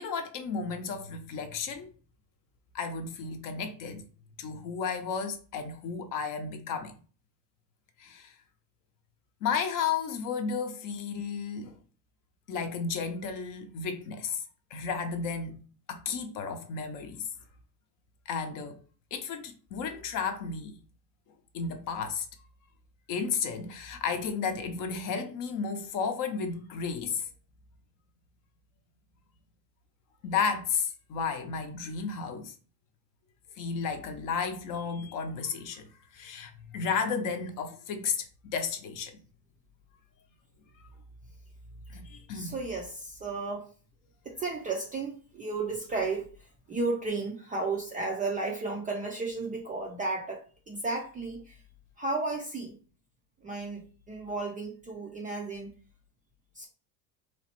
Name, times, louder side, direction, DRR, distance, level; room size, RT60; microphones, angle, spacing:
voice 1, 0.0-1.9 2.7-4.0 4.4-6.9 8.0-8.4 9.4-11.8 12.5-14.4 14.7-17.3 18.3-18.8 19.1-20.8 21.5-22.3 23.1-27.3 30.2-32.6 33.6-39.2 41.9-42.5, left 5 dB, 40° left, 0.6 m, -33 dB
voice 2, 42.3-43.7 44.2-51.6 52.0-52.8 53.4-55.7 56.5-56.7, right 3 dB, 20° right, 0.4 m, -34 dB
3.1 x 2.0 x 2.9 m
hypercardioid pair, 100°, 49 cm